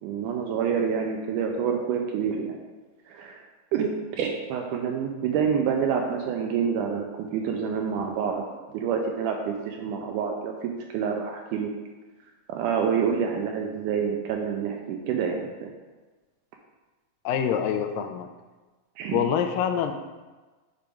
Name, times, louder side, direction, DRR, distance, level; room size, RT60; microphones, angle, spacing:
voice 1, 0.0-2.6 3.1-3.4 3.7-8.4 8.7-11.7 12.5-15.7 19.0-19.3, right 7 dB, 80° right, 2 dB, 1.9 m, -27 dB
voice 2, 17.3-18.3 19.1-19.9, left 8 dB, 85° left, 6 dB, 2.2 m, -25 dB
6.7 x 5.1 x 3.4 m, 1.2 s
omnidirectional pair, 4.0 m